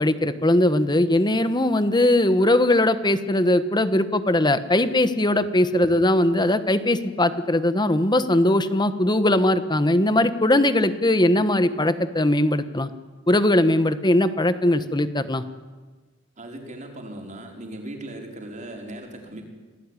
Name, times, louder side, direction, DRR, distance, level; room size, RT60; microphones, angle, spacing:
voice 1, 0.0-12.9 13.3-15.4, left 1 dB, 20° left, 11 dB, 1.3 m, -20 dB
voice 2, 16.4-19.4, right 1 dB, 40° right, 1 dB, 5.0 m, -38 dB
27.5 x 18.5 x 9.9 m, 1.3 s
head